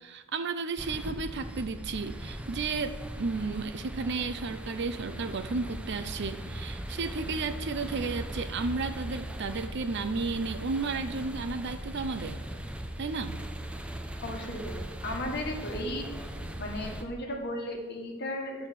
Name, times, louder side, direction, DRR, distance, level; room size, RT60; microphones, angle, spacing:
voice 1, 0.0-12.4 13.0-13.4, right 4 dB, 50° right, 10 dB, 0.5 m, -33 dB
sound 1, 0.8-17.0, right 1 dB, 5° right, 0.5 m, -39 dB
voice 2, 14.2-16.1 16.6-18.7, left 1 dB, 50° left, 1 dB, 1.6 m, -35 dB
9.8 x 4.9 x 7.4 m, 1.4 s
head